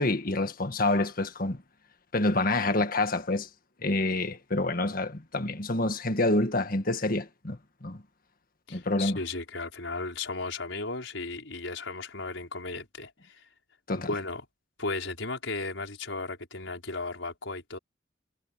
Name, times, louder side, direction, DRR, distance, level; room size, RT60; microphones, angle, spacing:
voice 1, 0.0-1.6 2.1-3.5 3.8-8.0 8.7-9.2 13.9-14.1, left 2 dB, 50° left, 1.8 m, -27 dB
voice 2, 8.7-13.5 13.9-14.4 14.8-17.8, left 3 dB, 80° left, 5.1 m, -35 dB
head